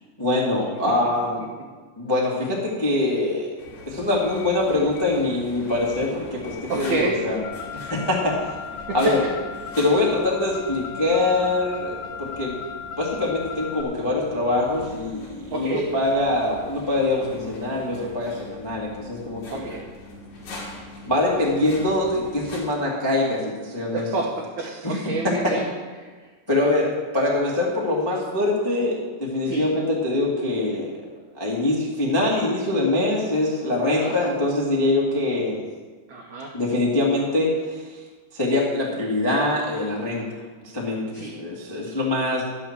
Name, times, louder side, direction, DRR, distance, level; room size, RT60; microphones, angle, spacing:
voice 1, 0.2-1.4 2.0-3.5 3.8-7.4 7.7-8.5 8.9-9.2 9.8-12.5 13.0-19.7 21.0-24.1 24.8-25.1 25.4-25.5 26.5-30.9 31.3-35.6 36.5-38.0 38.3-40.2 40.6-42.4, left 2 dB, 20° left, -4 dB, 0.6 m, -24 dB
sound 1, 3.6-22.6, left 2 dB, 45° left, 3.3 m, -42 dB
voice 2, 6.7-7.2 8.9-9.1 15.5-15.9 19.5-19.8 23.9-25.6 26.0-26.1 29.4-29.6 34.0-34.1 36.1-36.5 41.1-41.3, right 3 dB, 80° right, -1 dB, 1.7 m, -28 dB
Car, 7.4-13.8, left 7 dB, 85° left, 1.8 m, -36 dB
12.5 x 7.8 x 7.4 m, 1.4 s
omnidirectional pair, 5.2 m